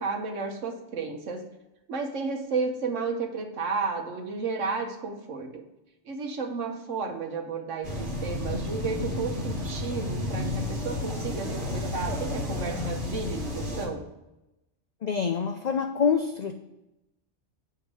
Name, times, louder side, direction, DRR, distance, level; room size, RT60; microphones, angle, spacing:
voice 1, 0.0-1.4 1.9-5.6 6.0-14.0, right 4 dB, 75° right, 4 dB, 1.3 m, -32 dB
sound 1, 7.8-13.9, left 1 dB, 55° right, 1.4 m, -31 dB
voice 2, 15.0-16.5, left 6 dB, 85° left, 5 dB, 0.3 m, -26 dB
7.8 x 3.5 x 6.1 m, 0.93 s
omnidirectional pair, 1.3 m